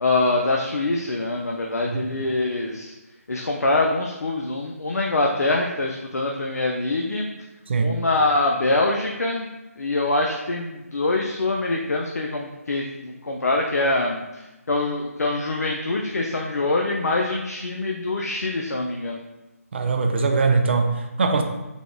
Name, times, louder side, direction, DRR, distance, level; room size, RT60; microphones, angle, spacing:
voice 1, 0.0-2.9 3.3-7.3 7.8-9.5 9.8-14.4 14.7-19.2, left 2 dB, 85° left, 0 dB, 0.4 m, -24 dB
voice 2, 1.9-2.3 7.7-8.0 19.7-21.4, right 4 dB, 45° right, 5 dB, 0.4 m, -22 dB
3.4 x 2.3 x 3.7 m, 1.0 s
figure-of-eight pair, 155°, 8 cm